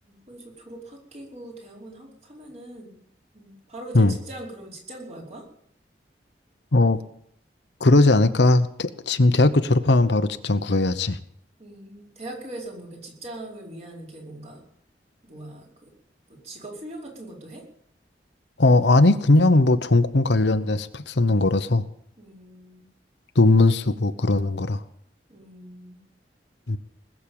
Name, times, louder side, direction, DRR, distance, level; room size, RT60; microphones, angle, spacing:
voice 1, 0.1-2.9 3.3-5.4 11.6-14.6 15.2-15.9 16.4-17.6 22.2-22.9 25.3-26.0, right 1 dB, 40° right, -1 dB, 4.9 m, -41 dB
voice 2, 7.8-11.2 18.6-21.8 23.4-24.8 26.7-26.8, left 2 dB, 85° left, 11 dB, 1.0 m, -19 dB
20.0 x 7.6 x 8.7 m, 0.70 s
head